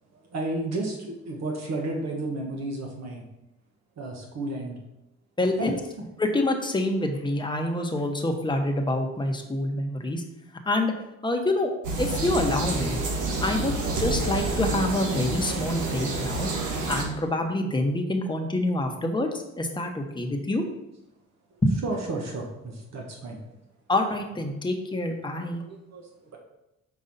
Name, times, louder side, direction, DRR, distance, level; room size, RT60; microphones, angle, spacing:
voice 1, 0.1-3.2 4.0-4.8 5.6-5.8 13.8-14.0 16.4-16.6 21.8-23.5 25.4-26.4, right 2 dB, 60° right, 0 dB, 1.2 m, -33 dB
voice 2, 5.4-5.7 6.2-10.2 10.6-10.9 11.2-11.7 12.0-13.0 13.4-16.5 16.9-19.3 19.6-20.6 21.6-21.7 23.9-25.6, left 1 dB, 15° left, 3 dB, 1.0 m, -26 dB
sound 1, 11.8-17.0, right 3 dB, 80° right, 1.3 m, -28 dB
5.3 x 4.7 x 4.1 m, 0.90 s
cardioid pair, 90°, 30 cm